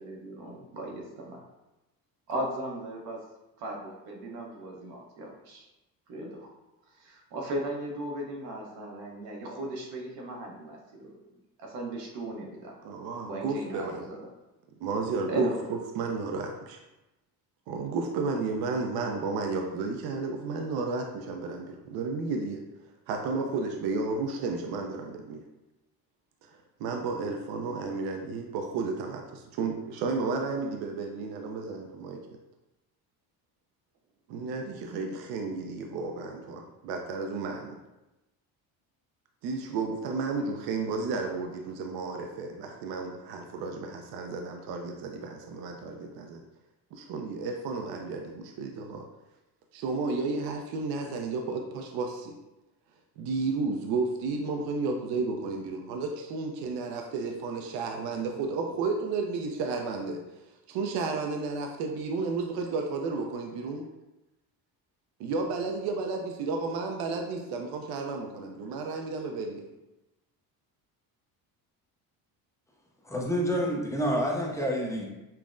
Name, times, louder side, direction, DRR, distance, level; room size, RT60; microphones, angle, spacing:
voice 1, 0.0-1.5 2.3-3.2 3.6-5.7 6.1-6.5 6.9-11.2 11.6-12.7 13.2-14.3 15.2-15.6, right 1 dB, 85° right, 0 dB, 0.9 m, -37 dB
voice 2, 12.8-14.0 14.8-16.8 17.7-22.6 23.1-25.4 26.4-32.2 34.3-37.8 39.4-46.4 46.9-49.0 49.7-52.4 53.2-60.2 60.7-63.8 65.2-69.7, right 4 dB, 70° right, 3 dB, 0.5 m, -32 dB
voice 3, 73.0-75.1, equal, 10° left, -2 dB, 0.4 m, -28 dB
5.4 x 2.0 x 2.5 m, 0.99 s
cardioid pair, 130°, 39 cm